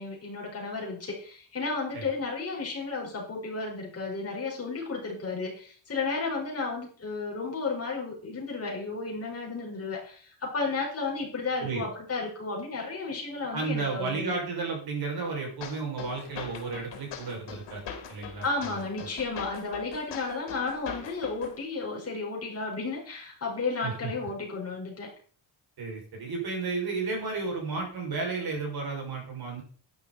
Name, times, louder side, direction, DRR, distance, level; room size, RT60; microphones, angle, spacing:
voice 1, 0.0-14.4 18.4-25.1, left 3 dB, 35° left, -2 dB, 5.0 m, -33 dB
voice 2, 13.5-18.8 23.8-24.1 25.8-29.6, right 4 dB, 60° right, 0 dB, 6.5 m, -33 dB
sound 1, 15.6-21.6, left 7 dB, 75° left, 3.1 m, -42 dB
12.0 x 10.5 x 4.3 m, 0.43 s
cardioid pair, 155°, 43 cm